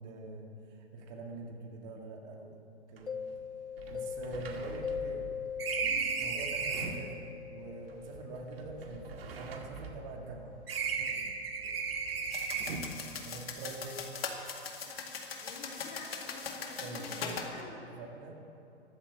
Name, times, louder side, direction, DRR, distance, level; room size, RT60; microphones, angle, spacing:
voice 1, 0.0-2.6 2.9-3.2 3.9-5.2 6.2-10.6 11.0-11.3 13.2-14.0 16.8-17.5 18.0-18.4, right 3 dB, 40° right, 1 dB, 2.2 m, -45 dB
sound 1, 3.0-3.1 3.3-3.4 3.8-7.1 7.9-10.3 10.7-13.0, right 5 dB, 60° right, 2.0 m, -36 dB
Mallet percussion, 3.1-12.6, left 7 dB, 80° left, 0.9 m, -43 dB
voice 2, 5.8-6.2 12.1-13.1 14.8-15.0 15.3-17.9, left 3 dB, 30° left, -3 dB, 3.9 m, -50 dB
sound 2, 12.3-17.5, left 5 dB, 60° left, 2.2 m, -40 dB
14.5 x 12.5 x 7.4 m, 2.7 s
figure-of-eight pair, 110°, 33 cm